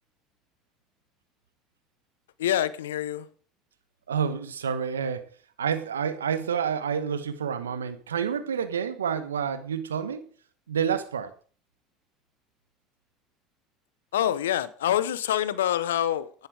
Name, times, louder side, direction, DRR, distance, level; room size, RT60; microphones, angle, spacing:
voice 1, 2.4-3.3 14.1-16.5, left 11 dB, 80° left, 0.9 m, -26 dB
voice 2, 4.1-5.3 5.6-10.3 10.7-11.3, right 7 dB, 90° right, 1.2 m, -29 dB
11.0 x 11.0 x 5.0 m
hypercardioid pair, 70°, 0 cm